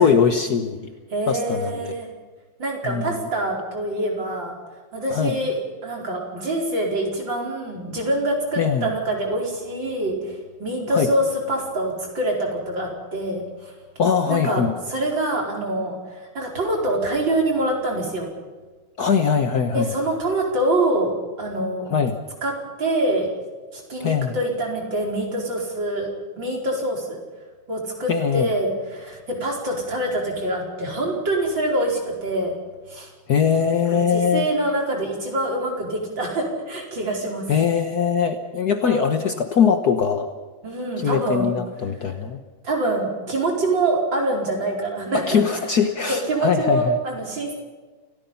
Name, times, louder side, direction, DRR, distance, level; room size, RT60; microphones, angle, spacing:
voice 1, 0.0-0.9 1.3-1.9 2.8-3.1 5.1-5.4 8.6-8.9 10.9-11.1 14.0-14.7 19.0-19.9 21.9-22.2 24.0-24.3 28.1-28.5 33.3-34.5 37.5-40.3 41.0-42.4 45.1-47.0, left 7 dB, 55° left, 7 dB, 1.6 m, -21 dB
voice 2, 1.1-2.1 2.6-4.5 4.9-13.8 14.3-18.3 19.7-21.1 21.4-21.9 22.4-22.5 22.8-23.3 23.7-26.1 26.4-27.2 27.7-32.6 32.9-33.1 33.9-37.5 38.8-39.2 40.6-41.5 42.6-45.4 46.1-47.5, right 1 dB, 65° right, 0 dB, 5.5 m, -25 dB
28.5 x 17.5 x 5.6 m, 1.4 s
omnidirectional pair, 2.2 m